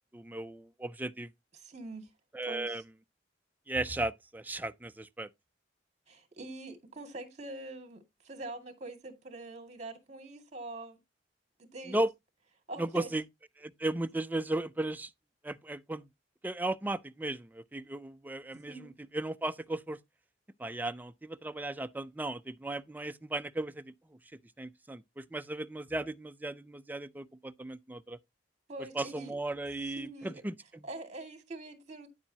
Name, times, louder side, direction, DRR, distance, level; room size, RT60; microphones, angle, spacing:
voice 1, 0.1-1.3 2.3-2.8 3.7-5.3 11.9-12.1 12.8-13.2 13.6-15.1 15.4-16.1 16.4-20.0 20.6-24.2 24.6-28.2 28.9-30.9, right 2 dB, 10° right, 0.4 m, -36 dB
voice 2, 1.5-2.1 2.5-2.8 6.1-11.0 11.6-12.0 12.7-13.1 18.7-18.9 28.7-29.4 29.9-30.4 30.8-32.1, right 2 dB, 40° right, 2.1 m, -44 dB
9.6 x 7.5 x 2.8 m
head